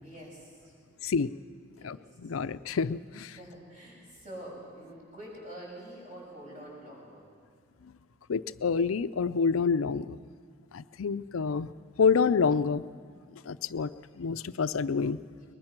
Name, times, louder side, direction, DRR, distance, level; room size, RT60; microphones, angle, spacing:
voice 1, 0.0-1.0 1.7-2.4 3.3-7.3 15.3-15.5, right 1 dB, 35° right, -3 dB, 6.9 m, -47 dB
voice 2, 1.0-1.3 1.8-3.4 8.3-10.2 10.7-11.7 12.0-12.8 13.5-13.9 14.2-15.2, left 5 dB, 90° left, 13 dB, 0.5 m, -27 dB
22.5 x 20.5 x 6.0 m, 2.1 s
head